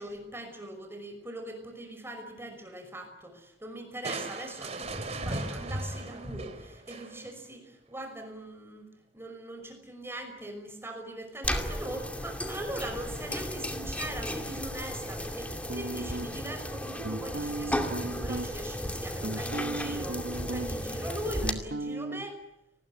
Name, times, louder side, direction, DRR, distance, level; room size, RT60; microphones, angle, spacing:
voice 1, 0.0-8.9 9.1-22.4, right 1 dB, 15° right, 6 dB, 5.7 m, -41 dB
Crushing, 4.0-7.4, right 2 dB, 40° right, 3.2 m, -37 dB
sound 1, 11.4-21.5, left 1 dB, 10° left, 2.3 m, -34 dB
sound 2, 15.7-16.5 17.0-18.5 19.0-20.9 21.1-22.2, right 2 dB, 75° right, 1.1 m, -36 dB
30.0 x 20.0 x 8.0 m, 0.80 s
head